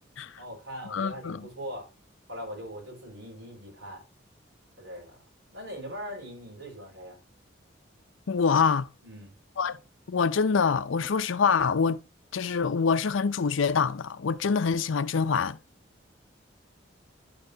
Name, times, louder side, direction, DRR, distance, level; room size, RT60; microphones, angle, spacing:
voice 1, 0.4-1.9 2.3-4.0 4.8-5.2 5.5-7.2 9.0-9.3, equal, 85° right, 4.4 m, -41 dB
voice 2, 0.9-1.5 8.3-8.9 9.6-9.8 10.1-12.0 12.3-15.6, left 5 dB, 90° left, 0.5 m, -25 dB
10.5 x 6.7 x 2.8 m
head